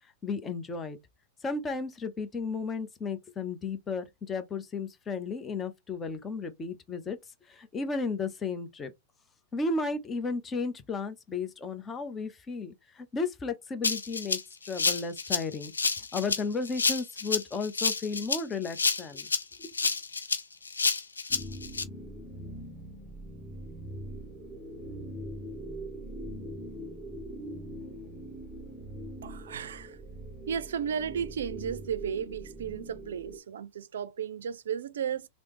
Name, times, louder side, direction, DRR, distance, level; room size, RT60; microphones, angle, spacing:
voice 1, 0.2-1.0 1.4-7.2 7.5-8.9 9.5-15.7 16.1-19.3 19.6-19.7, left 4 dB, 20° left, 0.7 m, -34 dB
Rattle (instrument), 13.8-21.8, left 4 dB, 90° left, 0.4 m, -29 dB
sound 1, 21.3-33.4, right 1 dB, 5° right, 1.0 m, -42 dB
voice 2, 29.2-30.0 30.5-35.3, right 8 dB, 75° right, 0.4 m, -34 dB
3.2 x 2.0 x 3.0 m
hypercardioid pair, 100°, 0 cm